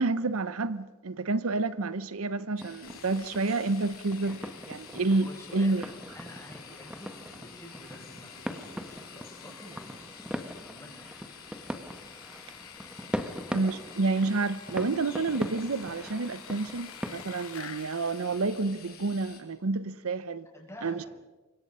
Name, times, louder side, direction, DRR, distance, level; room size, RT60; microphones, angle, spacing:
voice 1, 0.0-5.9 13.5-20.5 20.8-21.1, right 3 dB, 75° right, 0.8 m, -29 dB
sound 1, 2.6-19.4, left 7 dB, 45° left, 4.1 m, -51 dB
sound 2, 2.6-17.3, equal, 5° right, 1.3 m, -41 dB
Sawing, 2.8-19.3, left 6 dB, 70° left, 2.3 m, -50 dB
voice 2, 4.9-5.8 6.1-10.0 10.6-11.1 20.5-21.1, left 1 dB, 15° left, 6.9 m, -48 dB
28.0 x 24.0 x 5.5 m
head